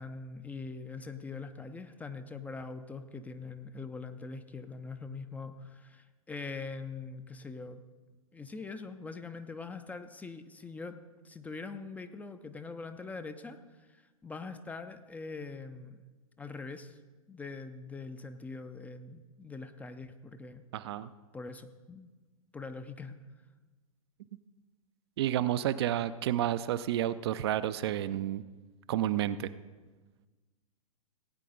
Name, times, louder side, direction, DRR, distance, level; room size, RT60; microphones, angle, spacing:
voice 1, 0.0-7.8 8.3-11.0 11.2-16.0 16.4-17.0 17.3-20.6 21.3-22.1 22.5-23.2, left 4 dB, 10° left, 9 dB, 0.5 m, -43 dB
voice 2, 20.7-21.1 25.2-28.4 28.9-29.5, right 12 dB, 45° right, 13 dB, 0.4 m, -30 dB
17.0 x 9.0 x 3.9 m, 1.3 s
figure-of-eight pair, 100°, 18 cm